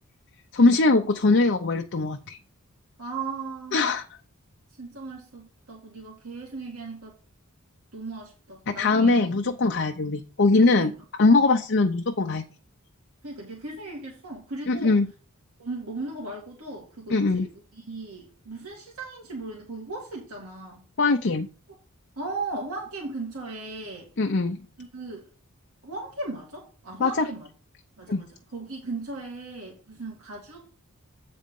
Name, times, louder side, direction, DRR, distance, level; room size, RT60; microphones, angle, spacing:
voice 1, 0.5-2.4 3.7-4.0 8.7-10.9 11.2-12.4 14.7-15.1 17.1-17.5 21.0-21.5 24.2-24.6 27.0-27.3 28.1-28.2, left 3 dB, 50° left, 4 dB, 0.7 m, -21 dB
voice 2, 3.0-3.9 4.8-7.1 7.9-9.3 10.8-10.9 13.2-15.0 15.6-20.8 22.2-24.1 24.8-25.3 25.8-27.5 28.0-30.7, right 3 dB, 85° right, -3 dB, 2.3 m, -37 dB
8.7 x 4.2 x 5.3 m, 0.37 s
head